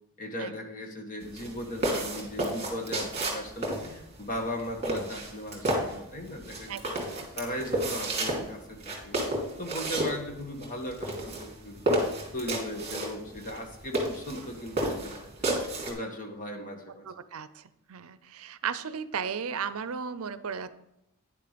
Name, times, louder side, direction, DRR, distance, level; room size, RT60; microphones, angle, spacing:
voice 1, 0.2-6.8 7.4-9.2 9.6-11.9 12.3-15.2 15.8-17.1, left 1 dB, 35° left, 3 dB, 1.5 m, -37 dB
sound 1, 1.2-15.9, right 1 dB, 30° right, 2.7 m, -32 dB
voice 2, 6.7-7.3 17.0-20.7, right 6 dB, 70° right, 13 dB, 0.6 m, -36 dB
10.0 x 6.9 x 5.1 m, 0.85 s
head